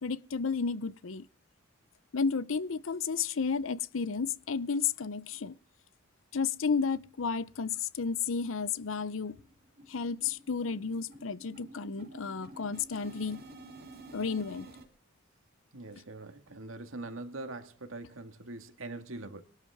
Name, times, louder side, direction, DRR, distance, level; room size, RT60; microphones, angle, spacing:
voice 1, 0.0-1.2 2.1-5.6 6.3-9.4 9.9-13.4 14.1-14.7, left 5 dB, 80° left, 0.7 m, -32 dB
sound 1, 8.0-8.1 8.5-8.6 8.9-14.9, right 1 dB, 50° right, 3.2 m, -51 dB
voice 2, 15.7-19.4, right 2 dB, 85° right, 1.9 m, -43 dB
22.0 x 12.5 x 3.6 m
head